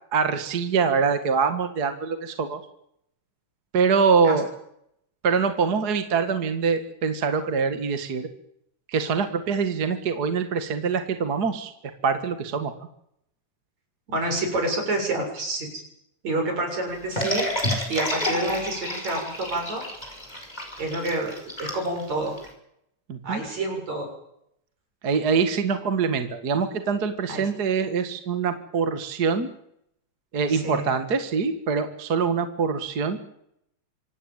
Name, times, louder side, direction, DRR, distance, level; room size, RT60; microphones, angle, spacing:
voice 1, 0.1-2.6 3.7-4.5 5.2-8.3 8.9-11.7 12.0-12.7 23.1-23.4 25.0-29.5 30.3-33.2, right 5 dB, 35° right, 8 dB, 1.9 m, -24 dB
voice 2, 14.1-15.7 16.2-17.5 17.9-19.8 20.8-21.3 21.6-22.3 23.2-24.1 27.3-27.4 30.5-30.8, right 2 dB, 60° right, 3 dB, 8.3 m, -28 dB
sound 1, 17.2-22.5, left 1 dB, 10° left, 5.5 m, -29 dB
26.0 x 17.5 x 9.2 m, 0.75 s
omnidirectional pair, 3.6 m